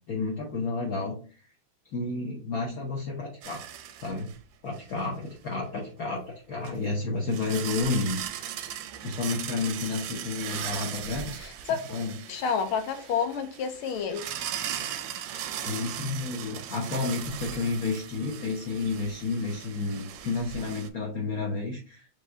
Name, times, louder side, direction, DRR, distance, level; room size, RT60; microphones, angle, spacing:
voice 1, 0.1-1.2 1.9-3.7 4.0-4.3 4.6-8.2 9.0-11.3 11.9-12.1 15.6-22.1, left 3 dB, 55° left, 1.1 m, -31 dB
sound 1, 3.4-4.4 4.8-4.9 6.6-6.7 7.3-20.9, right 10 dB, 75° right, 1.2 m, -38 dB
voice 2, 11.4-11.8 12.3-14.2, left 6 dB, 80° left, 1.6 m, -29 dB
4.8 x 3.2 x 2.6 m
omnidirectional pair, 2.3 m